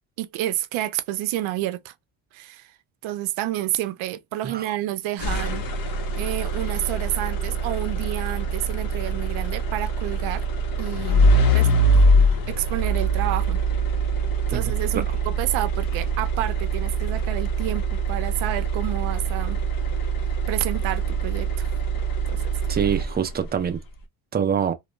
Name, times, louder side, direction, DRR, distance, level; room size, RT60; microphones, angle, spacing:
voice 1, 0.2-1.9 2.3-2.7 3.0-5.6 6.2-10.5 10.8-12.0 12.5-13.6 14.5-19.6 20.5-21.7 22.3-22.4, right 14 dB, 80° right, 0.5 m, -29 dB
sound 1, 5.2-23.5, right 2 dB, 50° left, 0.8 m, -23 dB
voice 2, 22.7-23.8 24.3-24.7, right 8 dB, 25° right, 0.3 m, -25 dB
2.3 x 2.1 x 3.0 m
cardioid pair, 105°, 47 cm